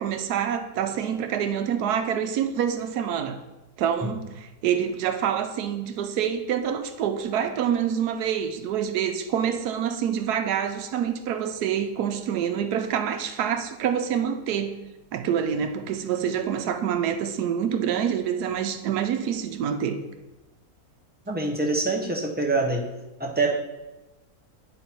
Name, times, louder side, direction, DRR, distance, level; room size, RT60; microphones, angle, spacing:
voice 1, 0.0-3.4 3.8-14.8 15.1-20.0, right 8 dB, 85° right, 8 dB, 1.2 m, -26 dB
voice 2, 21.3-22.9 23.2-23.5, right 3 dB, 10° right, 0 dB, 0.4 m, -25 dB
9.3 x 3.9 x 4.3 m, 1.0 s
omnidirectional pair, 1.6 m